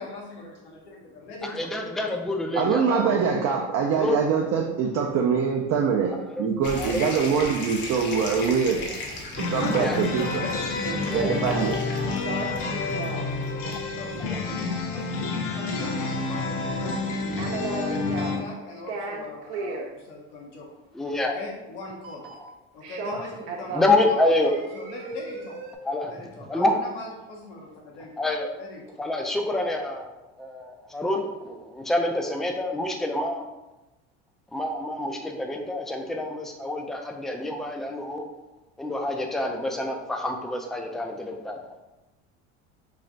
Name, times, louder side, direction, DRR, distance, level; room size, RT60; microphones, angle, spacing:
voice 1, 0.0-2.0 9.5-11.0 11.4-17.8 18.1-20.7 21.1-22.3 22.7-25.6 26.0-28.2 28.6-29.0, left 2 dB, 90° left, -2 dB, 1.1 m, -41 dB
voice 2, 1.4-3.2 4.0-4.2 6.2-6.5 6.8-7.1 9.7-10.0 14.2-14.4 20.9-21.4 23.7-24.6 25.8-26.1 26.5-26.7 28.2-28.5 29.0-33.5 34.5-38.3 38.8-41.6, left 2 dB, ahead, 2 dB, 0.4 m, -27 dB
voice 3, 2.5-6.1 6.4-8.8 9.4-10.5 11.1-11.8, right 6 dB, 50° right, 1 dB, 0.5 m, -24 dB
sound 1, 6.6-17.9, left 2 dB, 60° left, 1.0 m, -39 dB
sound 2, 9.4-18.4, left 3 dB, 40° left, 0.7 m, -29 dB
sound 3, 10.2-11.8 12.1-13.2 16.3-16.4 16.7-18.5 18.7-19.9 22.0-22.5 22.8-24.1 24.4-25.8, right 3 dB, 75° right, 0.8 m, -35 dB
3.2 x 2.4 x 3.9 m, 1.0 s
supercardioid pair, 90°, 34 cm